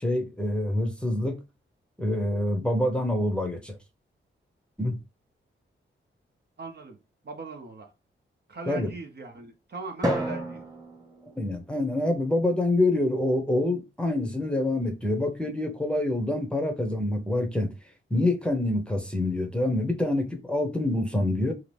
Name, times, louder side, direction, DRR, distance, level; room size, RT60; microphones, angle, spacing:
voice 1, 0.0-1.4 2.0-3.7 4.8-5.0 8.7-8.9 11.4-17.7 18.1-21.5, left 1 dB, 5° left, 0.8 m, -26 dB
voice 2, 6.6-7.0 7.2-7.9 8.5-10.6, right 3 dB, 55° right, 0.8 m, -39 dB
Drum, 10.0-12.3, equal, 15° right, 1.1 m, -32 dB
2.8 x 2.5 x 3.3 m
cardioid pair, 75°, 21 cm